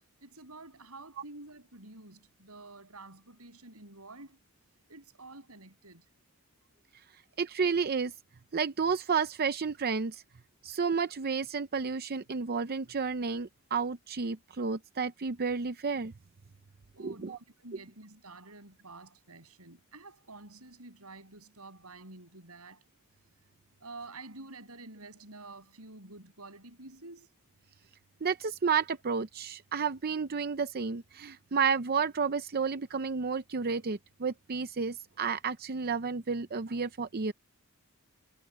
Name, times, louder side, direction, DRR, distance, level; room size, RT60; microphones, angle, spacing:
voice 1, 0.0-4.4 4.9-6.0 17.0-22.8 23.8-27.3, right 2 dB, 90° right, 7.3 m, -49 dB
voice 2, 7.4-8.1 8.5-10.2 10.6-16.1 17.0-17.4 28.2-37.3, right 5 dB, 45° right, 0.6 m, -31 dB
head